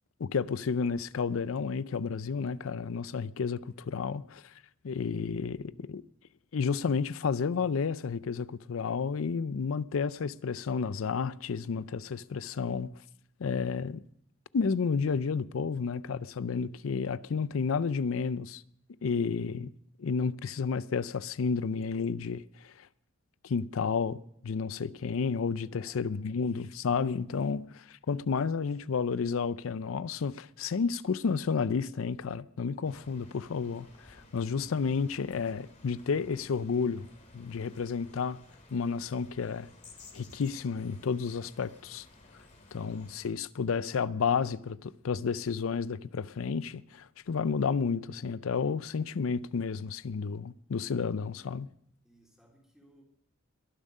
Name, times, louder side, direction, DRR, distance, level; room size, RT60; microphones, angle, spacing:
voice 1, 0.2-4.4 4.8-6.0 6.5-12.9 13.4-14.0 14.5-18.6 19.0-19.7 20.0-22.7 23.4-37.1 37.3-38.4 38.7-39.7 40.1-42.0 42.7-51.7, left 5 dB, 75° left, 0.5 m, -31 dB
voice 2, 25.6-26.0 34.1-34.4 42.5-43.0 52.0-53.0, equal, 5° right, 3.2 m, -62 dB
sound 1, 32.8-43.3, left 2 dB, 35° left, 2.4 m, -56 dB
22.0 x 7.4 x 5.4 m
head